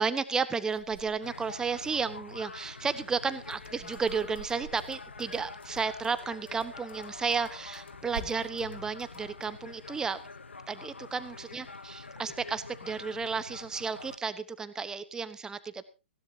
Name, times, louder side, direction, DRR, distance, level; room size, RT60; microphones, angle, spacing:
voice 1, 0.0-10.2 10.7-15.8, right 5 dB, 10° right, 13 dB, 1.1 m, -33 dB
sound 1, 0.6-1.9 2.3-5.9 6.9-8.8 9.2-10.1, right 6 dB, 60° right, 2.8 m, -49 dB
sound 2, 1.2-14.2, left 4 dB, 85° left, 1.2 m, -46 dB
sound 3, 3.4-9.5, left 5 dB, 70° left, 2.4 m, -53 dB
18.5 x 16.5 x 2.8 m, 0.30 s
figure-of-eight pair, 125°, 6 cm